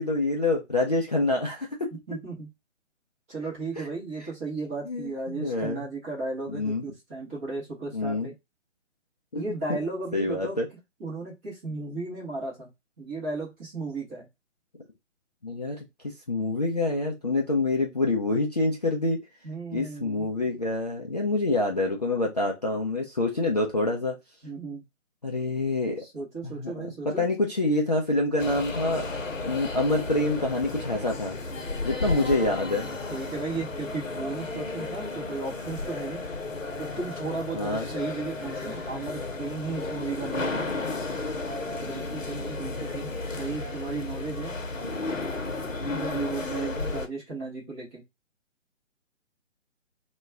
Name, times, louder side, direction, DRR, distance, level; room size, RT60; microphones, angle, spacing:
voice 1, 0.0-1.7 3.8-3.9 4.9-5.8 6.5-6.8 7.9-8.3 9.3-9.4 9.7-9.8 10.1-10.7 15.4-15.8 16.3-19.2 19.7-24.2 25.2-26.0 26.4-29.1 29.4-31.4 31.8-32.9 37.5-37.9, left 2 dB, 35° left, -2 dB, 0.4 m, -26 dB
voice 2, 2.1-2.5 3.3-8.3 9.3-10.6 11.0-12.7 13.0-14.3 19.4-20.3 24.4-24.8 26.0-27.2 33.1-36.2 36.8-40.7 41.8-44.5 45.9-48.0, right 3 dB, 10° right, -5 dB, 0.7 m, -35 dB
sound 1, 28.4-47.1, left 3 dB, 90° left, 0.8 m, -33 dB
2.3 x 2.2 x 3.4 m, 0.22 s
figure-of-eight pair, 140°, 38 cm